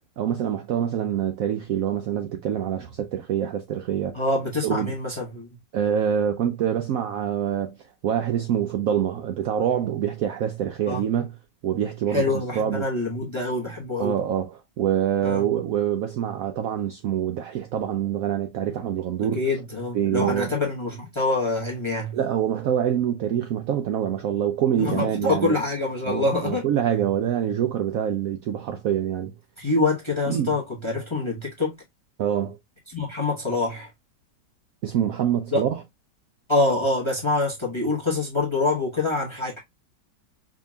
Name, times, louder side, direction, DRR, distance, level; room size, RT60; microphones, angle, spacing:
voice 1, 0.2-4.2 4.6-4.9 5.7-7.7 8.0-11.4 11.6-12.9 14.0-19.4 19.9-20.5 22.1-25.5 26.1-29.3 30.3-30.6 32.2-32.6 34.8-35.8, right 9 dB, 70° right, 0.8 m, -25 dB
voice 2, 4.1-5.5 10.9-11.0 12.1-14.1 15.2-15.4 19.3-22.1 24.8-26.6 29.6-31.8 32.9-33.9 35.5-35.6 36.5-39.6, left 2 dB, 25° left, 0.7 m, -25 dB
4.9 x 2.8 x 2.2 m
omnidirectional pair, 1.9 m